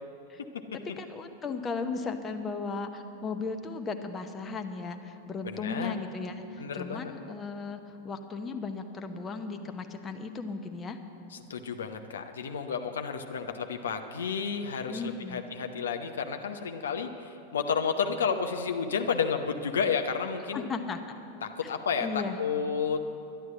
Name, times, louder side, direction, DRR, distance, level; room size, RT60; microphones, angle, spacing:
voice 1, 1.0-11.0 14.9-15.4 20.5-21.2 21.6-21.7 22.0-22.4, left 4 dB, 20° left, 6 dB, 0.9 m, -36 dB
voice 2, 5.4-5.9 6.6-7.1 11.5-20.7 21.4-23.0, left 6 dB, 65° left, 5 dB, 0.8 m, -31 dB
11.5 x 11.0 x 7.6 m, 2.7 s
figure-of-eight pair, 90°, 0 cm